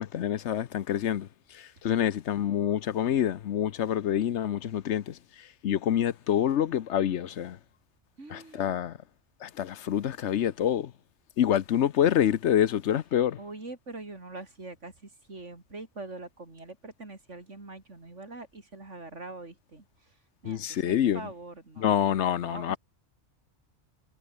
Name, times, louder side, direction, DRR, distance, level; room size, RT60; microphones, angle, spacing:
voice 1, 0.0-7.6 8.3-9.0 9.4-10.9 11.4-13.4 20.4-21.2 21.8-22.8, left 10 dB, 70° left, 1.0 m, -27 dB
voice 2, 8.2-8.8 13.4-22.1 22.4-22.8, right 2 dB, 75° right, 4.3 m, -44 dB
omnidirectional pair, 1.2 m